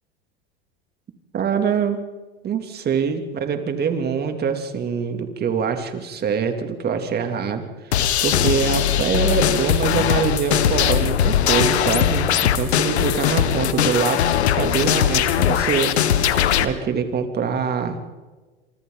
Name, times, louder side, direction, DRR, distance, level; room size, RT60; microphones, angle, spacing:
voice 1, 1.3-2.0 2.4-7.6 8.2-15.9 16.6-18.0, right 6 dB, 30° right, 6 dB, 3.0 m, -24 dB
sound 1, 7.9-16.7, left 9 dB, 90° left, 1.6 m, -20 dB
27.0 x 25.0 x 4.0 m, 1.3 s
hypercardioid pair, 110°, 32 cm